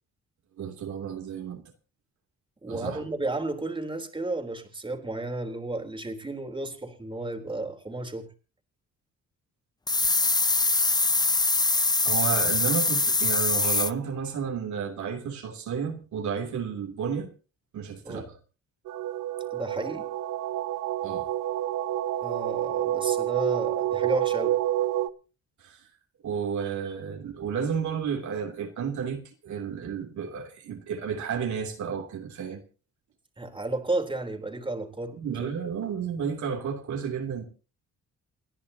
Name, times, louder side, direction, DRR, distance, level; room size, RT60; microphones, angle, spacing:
voice 1, 0.6-1.7 2.7-3.0 12.0-17.3 17.7-18.3 21.0-21.3 25.6-25.8 26.2-32.6 35.2-37.4, right 6 dB, 70° right, 3.0 m, -32 dB
voice 2, 2.6-8.3 18.1-18.3 19.5-20.1 22.2-24.6 33.4-35.2, right 2 dB, 15° right, 3.6 m, -32 dB
sound 1, 9.9-13.9, left 3 dB, 15° left, 0.7 m, -23 dB
sound 2, 18.9-25.1, right 13 dB, 90° right, 0.8 m, -28 dB
29.5 x 10.5 x 2.8 m
cardioid pair, 90°, 30 cm